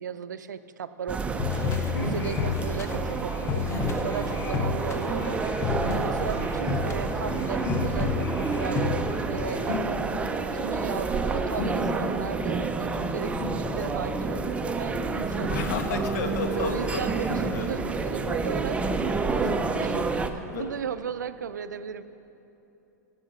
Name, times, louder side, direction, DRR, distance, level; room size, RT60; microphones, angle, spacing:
voice 1, 0.0-1.7 2.0-3.7 4.0-5.4 5.9-10.1 10.5-15.5 16.5-18.8 19.3-22.0, right 7 dB, 85° right, 13 dB, 0.4 m, -36 dB
sound 1, 1.1-20.3, right 4 dB, 15° right, 0.5 m, -29 dB
sound 2, 1.4-9.8, left 6 dB, 30° left, 0.7 m, -32 dB
sound 3, 1.9-2.3 3.7-3.9 5.8-6.2 7.6-7.9 9.7-9.9 11.6-11.8 13.4-13.6 15.3-15.6 17.3-17.9 19.4-19.7 20.5-20.6, left 2 dB, 85° left, 2.2 m, -33 dB
voice 2, 15.5-17.0 17.5-17.7 20.5-20.7, left 5 dB, 60° left, 5 dB, 1.1 m, -32 dB
14.5 x 5.6 x 4.9 m, 3.0 s
hypercardioid pair, 110°, 10 cm